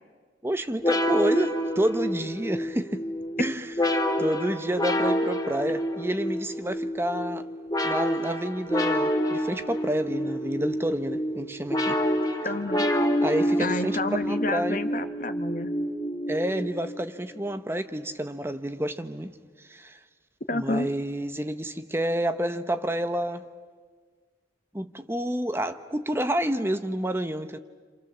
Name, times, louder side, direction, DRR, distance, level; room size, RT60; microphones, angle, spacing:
voice 1, 0.4-3.0 3.4-3.7 4.2-7.4 7.8-12.0 13.2-14.8 16.3-19.3 19.6-20.0 20.5-23.4 24.7-27.6, right 1 dB, 15° right, 9 dB, 0.9 m, -29 dB
sound 1, 0.8-17.0, equal, 20° left, 1.9 m, -28 dB
voice 2, 12.4-12.9 13.6-15.7 20.5-20.9, left 2 dB, 45° left, 9 dB, 1.3 m, -29 dB
30.0 x 27.0 x 7.4 m, 1.6 s
head